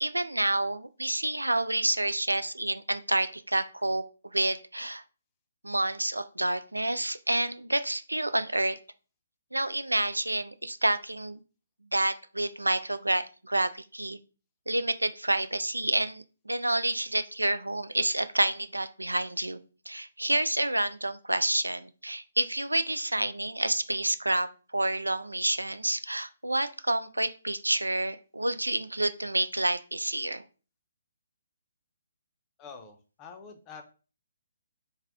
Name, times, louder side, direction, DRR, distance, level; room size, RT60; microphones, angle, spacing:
voice 1, 0.0-5.0 5.6-8.8 9.5-11.4 11.9-14.2 14.7-19.6 19.9-30.4, right 1 dB, 85° right, 11 dB, 0.3 m, -29 dB
voice 2, 32.6-33.8, left 5 dB, 20° left, 4 dB, 0.6 m, -46 dB
3.4 x 2.1 x 3.4 m, 0.36 s
figure-of-eight pair, 135°, 0 cm